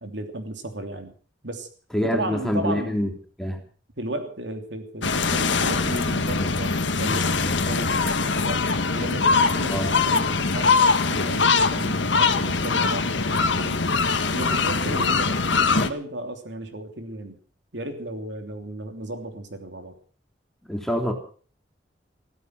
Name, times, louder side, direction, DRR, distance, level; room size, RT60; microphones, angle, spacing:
voice 1, 0.0-1.1 1.4-1.7 2.0-3.0 4.0-8.6 8.9-13.2 13.6-13.8 14.3-17.4 17.7-19.9, right 1 dB, 80° right, 5 dB, 3.1 m, -34 dB
voice 2, 1.9-3.1 3.4-3.6 9.6-9.9 20.7-21.1, equal, 5° left, 2 dB, 3.2 m, -25 dB
sound 1, 5.0-15.9, left 4 dB, 85° left, 1.5 m, -22 dB
16.0 x 14.0 x 6.4 m, 0.43 s
head